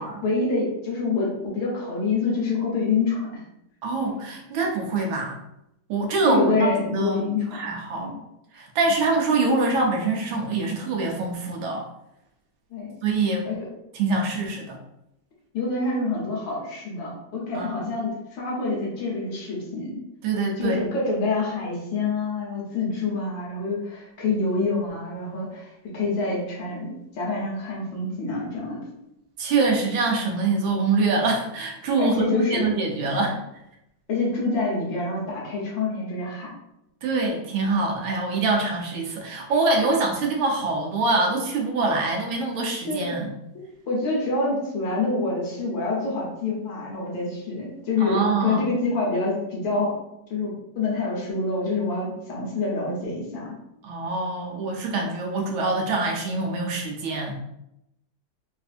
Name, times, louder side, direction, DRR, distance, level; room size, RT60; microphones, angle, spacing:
voice 1, 0.0-3.3 6.2-7.6 7.9-8.1 12.7-12.9 13.5-13.7 15.5-20.0 20.6-28.8 32.0-32.7 33.0-33.3 34.1-36.5 42.9-43.2 43.5-49.9 50.3-53.5, left 3 dB, 70° left, -3 dB, 1.7 m, -26 dB
voice 2, 3.8-5.4 5.9-7.3 7.5-8.1 8.5-11.8 13.0-13.5 13.9-14.8 17.5-17.8 20.2-20.8 29.4-33.4 37.0-43.3 48.0-48.7 53.8-57.3, right 3 dB, 75° right, 1 dB, 1.4 m, -24 dB
4.2 x 2.6 x 2.4 m, 0.84 s
omnidirectional pair, 2.2 m